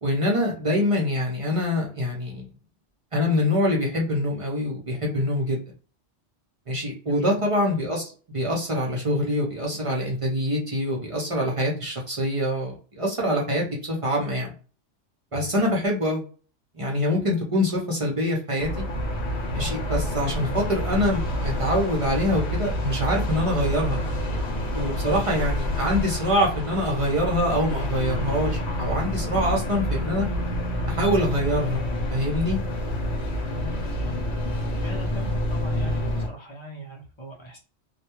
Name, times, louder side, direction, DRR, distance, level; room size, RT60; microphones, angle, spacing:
voice 1, 0.0-2.4 3.1-5.6 6.7-8.0 8.3-14.5 15.3-16.2 16.7-18.8 19.5-24.0 24.7-30.3 30.9-31.8 32.1-32.6, left 1 dB, 40° right, -2 dB, 0.5 m, -25 dB
voice 2, 7.1-7.4 33.6-34.2 34.8-37.6, left 1 dB, 35° left, -2 dB, 0.5 m, -40 dB
sound 1, 18.6-36.3, equal, 70° left, 1.0 m, -28 dB
2.2 x 2.2 x 2.9 m, 0.39 s
omnidirectional pair, 1.2 m